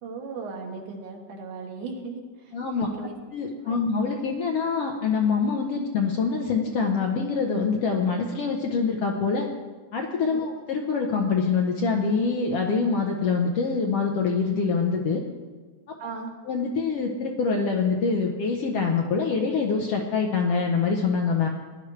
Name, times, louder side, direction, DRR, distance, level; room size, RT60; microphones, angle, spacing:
voice 1, 0.0-3.2 3.6-3.8 10.3-10.4 16.0-16.3, right 4 dB, 75° right, 1 dB, 2.9 m, -37 dB
voice 2, 2.5-2.9 3.3-9.5 9.9-15.2 16.5-21.5, left 5 dB, 65° left, 1 dB, 1.5 m, -25 dB
18.0 x 11.0 x 3.2 m, 1.4 s
omnidirectional pair, 3.6 m